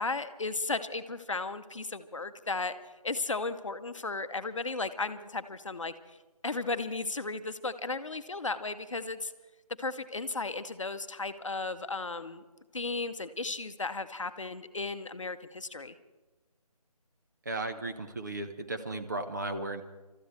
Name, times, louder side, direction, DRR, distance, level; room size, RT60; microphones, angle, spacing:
voice 1, 0.0-2.7 3.0-5.9 6.4-9.3 9.8-12.4 12.7-15.9, left 3 dB, 50° left, 10 dB, 0.8 m, -35 dB
voice 2, 17.4-19.8, right 2 dB, 30° right, 6 dB, 0.8 m, -35 dB
29.0 x 13.5 x 3.3 m, 1.2 s
figure-of-eight pair, 160°, 20 cm